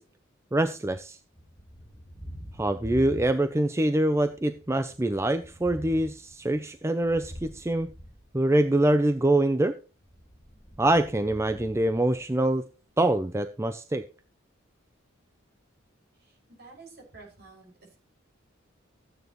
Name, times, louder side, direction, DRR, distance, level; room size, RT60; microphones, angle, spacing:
voice 1, 0.5-1.2 2.6-7.9 8.3-9.7 10.8-12.6 13.0-14.0, right 1 dB, 15° right, 10 dB, 0.5 m, -24 dB
Thunder, 1.3-3.8 4.1-8.9 10.0-12.6, equal, 15° left, 1.6 m, -45 dB
voice 2, 16.1-18.0, right 3 dB, 55° right, 0 dB, 6.4 m, -50 dB
14.5 x 9.4 x 3.1 m, 0.34 s
head